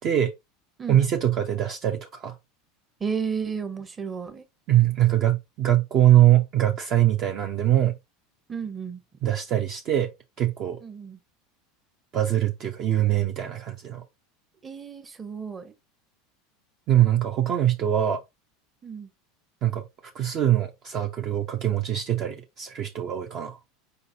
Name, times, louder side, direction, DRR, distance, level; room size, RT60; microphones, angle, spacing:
voice 1, 0.9-2.3 4.7-8.0 9.2-10.1 10.4-10.8 12.1-14.0 16.9-18.2 19.6-19.8 20.1-23.6, right 12 dB, 45° right, 0.6 m, -22 dB
voice 2, 3.0-4.4 8.5-9.0 10.8-11.2 14.6-15.7 18.8-19.1, right 6 dB, 25° right, 0.9 m, -32 dB
4.6 x 3.9 x 2.7 m
hypercardioid pair, 80°, 0 cm